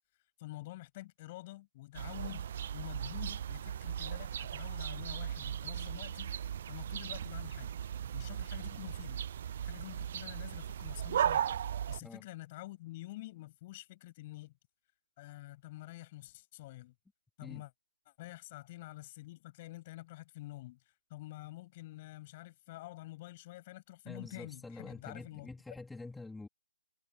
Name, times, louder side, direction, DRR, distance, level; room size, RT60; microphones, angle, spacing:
voice 1, 0.4-7.7 8.1-9.2 9.6-11.5 11.9-14.5 15.2-16.9 17.4-17.7 18.2-20.8 21.1-25.5, left 18 dB, 30° left, 7.5 m, -48 dB
sound 1, 1.9-12.0, right 9 dB, 45° right, 0.4 m, -37 dB
voice 2, 24.0-26.5, left 3 dB, 5° left, 3.2 m, -47 dB
figure-of-eight pair, 145°, 0 cm